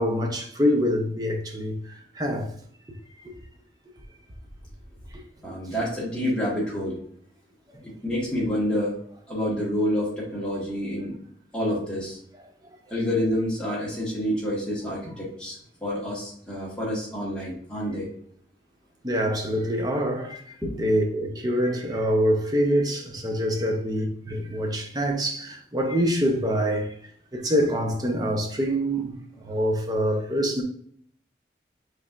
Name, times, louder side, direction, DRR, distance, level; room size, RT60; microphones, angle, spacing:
voice 1, 0.0-2.5 19.0-20.4 20.7-26.9 27.3-29.1 29.4-30.6, equal, 20° right, 0.6 m, -25 dB
voice 2, 5.4-7.0 7.8-9.0 9.3-11.1 11.5-12.2 12.9-18.1 20.6-20.7, equal, 5° left, 1.5 m, -28 dB
5.5 x 3.2 x 2.4 m
head